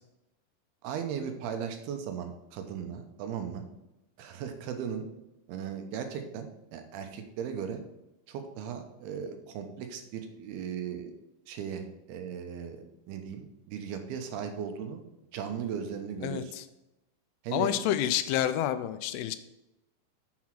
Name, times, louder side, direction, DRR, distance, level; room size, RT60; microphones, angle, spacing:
voice 1, 0.8-3.6 4.2-5.0 5.5-7.8 8.3-11.1 11.5-15.0 15.3-16.5 17.4-17.7, right 7 dB, 85° right, 6 dB, 2.8 m, -37 dB
voice 2, 16.2-16.6 17.5-19.4, left 11 dB, 90° left, 12 dB, 2.6 m, -29 dB
7.1 x 5.8 x 4.6 m, 0.93 s
omnidirectional pair, 4.4 m